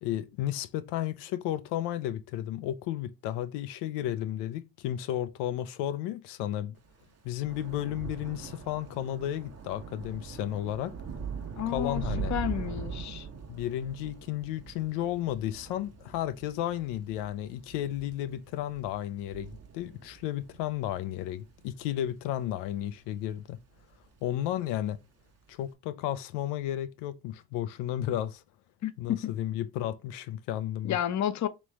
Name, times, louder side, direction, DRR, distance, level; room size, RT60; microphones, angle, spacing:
voice 1, 0.0-6.8 7.2-10.9 11.7-12.3 12.8-12.9 13.5-23.6 24.2-25.0 25.5-28.4 29.0-31.0, left 12 dB, 75° left, 0.6 m, -33 dB
Thunder / Rain, 6.9-23.4 23.8-24.2 24.5-24.7, right 6 dB, 35° right, 1.0 m, -42 dB
voice 2, 11.6-12.0 12.3-13.3 28.8-29.3 30.8-31.5, left 11 dB, 40° left, 0.7 m, -31 dB
3.2 x 3.0 x 4.6 m
supercardioid pair, 80°, 42 cm